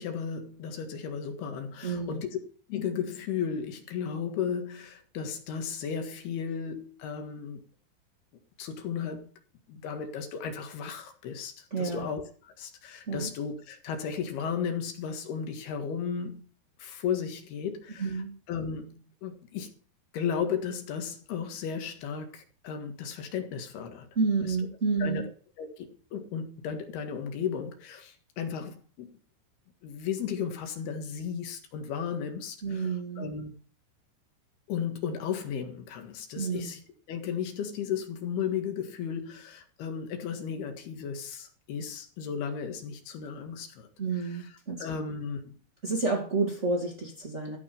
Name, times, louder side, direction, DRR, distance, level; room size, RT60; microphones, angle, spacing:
voice 1, 0.0-2.3 2.7-7.6 8.6-9.3 9.7-16.5 16.8-18.1 18.5-19.7 20.1-24.1 24.4-24.6 25.0-25.3 25.6-29.2 29.8-33.5 34.7-36.8 37.1-43.9 44.1-44.5 44.8-45.6, left 7 dB, 65° left, 3.3 m, -35 dB
voice 2, 1.8-2.2 11.7-12.1 13.1-13.3 18.0-18.3 24.1-25.2 32.6-33.3 36.3-36.7 44.0-44.8 45.8-47.6, right 4 dB, 90° right, 0.6 m, -30 dB
14.0 x 6.1 x 6.9 m
omnidirectional pair, 5.6 m